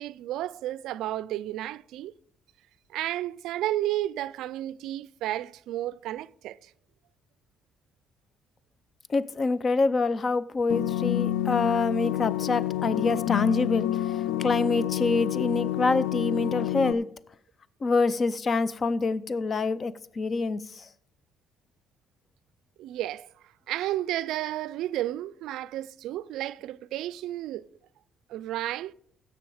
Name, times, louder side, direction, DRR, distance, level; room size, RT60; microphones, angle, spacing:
voice 1, 0.0-2.1 2.9-6.7 22.8-23.3 23.7-27.7 28.3-28.9, right 14 dB, 80° right, 0.3 m, -32 dB
voice 2, 9.1-17.1 17.8-20.9, left 3 dB, 45° left, 0.6 m, -26 dB
sound 1, 10.7-16.9, left 13 dB, 90° left, 0.3 m, -28 dB
16.5 x 6.2 x 4.9 m
supercardioid pair, 75°, 0 cm